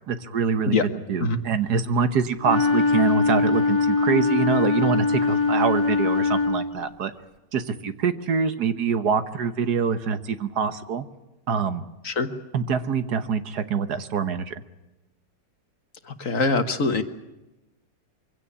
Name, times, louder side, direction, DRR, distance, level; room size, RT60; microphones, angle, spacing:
voice 1, 0.1-0.8 1.1-7.1 7.5-11.0 11.5-11.9 12.5-14.5, right 6 dB, 65° right, 11 dB, 1.7 m, -25 dB
Wind instrument woodwind instrument, 2.4-6.9, left 4 dB, 20° left, 1.1 m, -22 dB
voice 2, 16.1-17.0, left 3 dB, 50° left, 9 dB, 1.7 m, -23 dB
24.0 x 16.5 x 9.9 m, 1.0 s
omnidirectional pair, 1.9 m